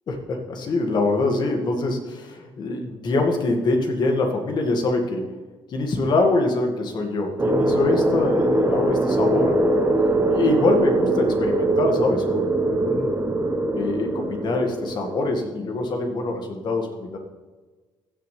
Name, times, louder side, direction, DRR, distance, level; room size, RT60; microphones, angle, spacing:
voice 1, 0.1-5.4 5.7-9.9 10.3-13.1 13.7-17.2, left 2 dB, 55° left, 3 dB, 2.1 m, -24 dB
sound 1, 7.4-15.5, right 2 dB, 25° right, 1.3 m, -22 dB
15.5 x 7.6 x 3.4 m, 1.3 s
cardioid pair, 90°, 9 cm